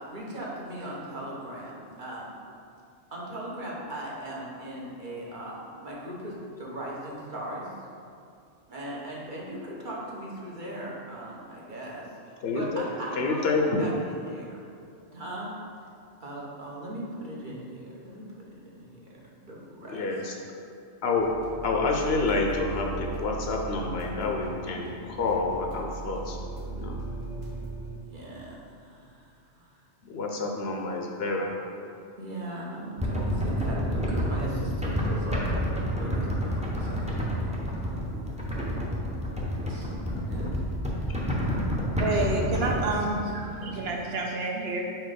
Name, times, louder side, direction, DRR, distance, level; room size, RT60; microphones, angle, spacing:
voice 1, 0.0-2.4 3.1-7.7 8.7-14.6 15.1-15.5 16.2-18.9 19.5-20.1 28.0-29.7 32.2-37.5 37.8-37.9 38.5-38.7 39.7-40.5 43.1-43.8, right 1 dB, 45° right, -5 dB, 1.1 m, -38 dB
voice 2, 12.4-12.8 13.2-13.9 19.9-20.3 21.0-21.3 21.6-26.4 26.6-27.0 30.0-31.6 41.1-41.2, left 3 dB, 65° left, 1 dB, 0.8 m, -28 dB
sound 1, 21.1-27.9, right 3 dB, 85° right, 1.4 m, -38 dB
sound 2, 33.0-43.1, equal, 10° right, 0.6 m, -29 dB
voice 3, 42.0-44.8, right 2 dB, 65° right, 1 dB, 0.8 m, -29 dB
4.5 x 4.1 x 5.1 m, 2.4 s
omnidirectional pair, 1.2 m